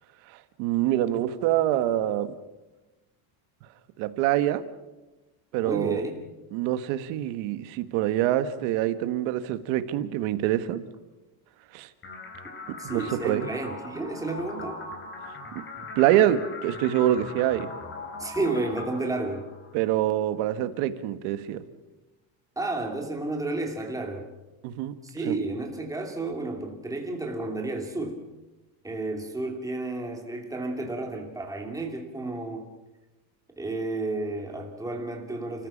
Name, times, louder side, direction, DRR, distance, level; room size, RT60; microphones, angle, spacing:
voice 1, 0.6-2.3 4.0-4.6 5.5-6.0 6.5-10.8 11.7-11.9 12.8-13.5 15.9-17.7 19.7-21.6 24.6-24.9 25.3-25.4, right 12 dB, 80° right, 11 dB, 1.6 m, -25 dB
voice 2, 5.6-6.1 12.8-14.8 18.2-19.5 22.6-24.3 25.0-28.2 28.8-32.7 33.6-35.7, right 2 dB, 5° right, 2 dB, 2.8 m, -31 dB
sound 1, 12.0-20.0, left 3 dB, 25° left, 3.8 m, -40 dB
30.0 x 14.5 x 7.3 m, 1.1 s
cardioid pair, 165°, 46 cm